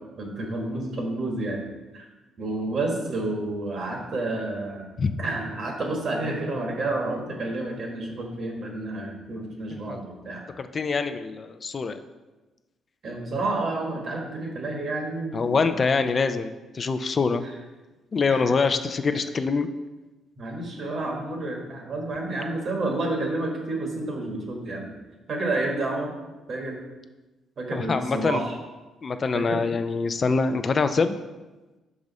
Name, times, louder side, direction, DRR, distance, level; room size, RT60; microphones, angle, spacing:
voice 1, 0.2-1.6 1.9-2.0 2.4-4.9 5.2-10.4 13.0-15.8 18.3-18.5 20.4-24.9 25.3-26.1 26.5-26.8 27.6-28.6 29.3-29.6, right 2 dB, 55° right, 1 dB, 1.4 m, -30 dB
voice 2, 10.6-12.0 15.3-17.4 18.1-19.7 27.7-28.4 29.0-31.2, left 4 dB, 40° left, 9 dB, 0.3 m, -25 dB
5.2 x 4.8 x 4.1 m, 1.1 s
cardioid pair, 90°, 0 cm